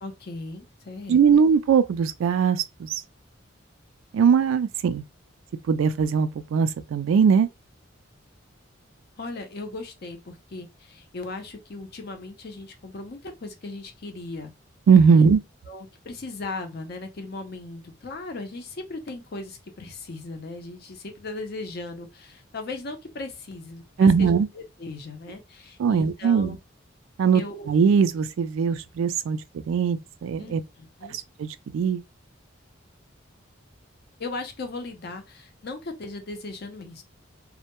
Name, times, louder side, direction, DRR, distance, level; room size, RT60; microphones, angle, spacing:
voice 1, 0.0-1.4 9.2-14.5 15.1-15.2 15.7-26.6 27.3-27.7 30.4-31.1 34.2-37.0, left 3 dB, 50° left, 0.5 m, -37 dB
voice 2, 1.1-2.9 4.1-5.0 5.7-7.5 14.9-15.4 24.0-24.5 25.8-26.6 27.2-27.4 27.7-30.6 31.1-32.0, right 6 dB, 85° right, 0.3 m, -20 dB
2.1 x 2.0 x 2.9 m
head